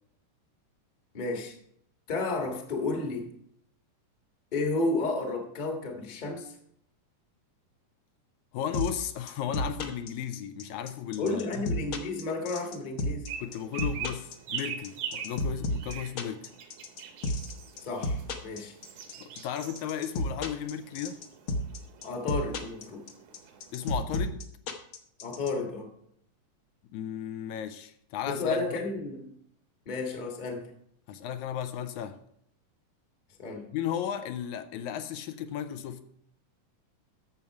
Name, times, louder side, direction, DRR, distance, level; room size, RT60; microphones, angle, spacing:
voice 1, 1.1-1.5 2.1-3.3 4.5-6.6 11.2-13.3 17.8-18.2 18.4-18.7 22.0-23.0 25.2-25.9 28.3-29.3 29.8-30.6 33.4-33.7, left 3 dB, 25° left, 0.9 m, -32 dB
voice 2, 8.5-11.7 13.4-16.5 19.2-21.2 23.7-24.4 26.9-28.8 31.1-32.2 33.7-36.0, left 9 dB, 80° left, 2.0 m, -35 dB
sound 1, 8.7-25.5, left 1 dB, 60° left, 1.5 m, -31 dB
sound 2, 13.3-24.0, right 8 dB, 75° right, 2.6 m, -43 dB
12.0 x 7.1 x 4.7 m
omnidirectional pair, 3.5 m